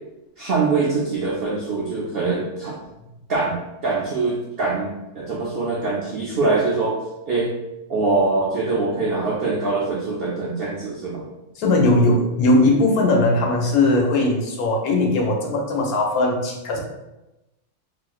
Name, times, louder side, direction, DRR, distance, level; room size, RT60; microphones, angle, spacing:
voice 1, 0.4-2.8 3.3-6.9 7.3-7.5 7.9-11.3, right 3 dB, 75° right, -5 dB, 0.5 m, -23 dB
voice 2, 11.6-16.8, left 2 dB, 80° left, 0 dB, 1.1 m, -19 dB
3.1 x 2.6 x 2.3 m, 0.96 s
omnidirectional pair, 1.6 m